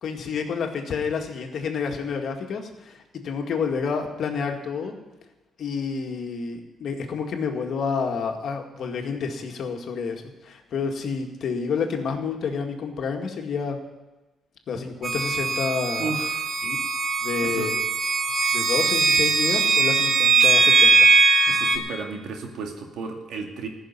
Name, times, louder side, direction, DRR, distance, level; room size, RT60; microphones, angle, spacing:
voice 1, 0.0-3.0 3.2-4.9 5.6-13.8 14.7-16.1 16.6-16.8 17.2-17.7 18.5-21.1, left 5 dB, 65° left, 3 dB, 2.0 m, -29 dB
sound 1, 15.0-21.8, right 4 dB, 50° right, 1.6 m, -20 dB
voice 2, 16.0-16.5 17.4-17.7 21.5-23.7, right 4 dB, 80° right, 3 dB, 2.2 m, -33 dB
14.5 x 6.6 x 9.7 m, 1.1 s
cardioid pair, 90°, 0 cm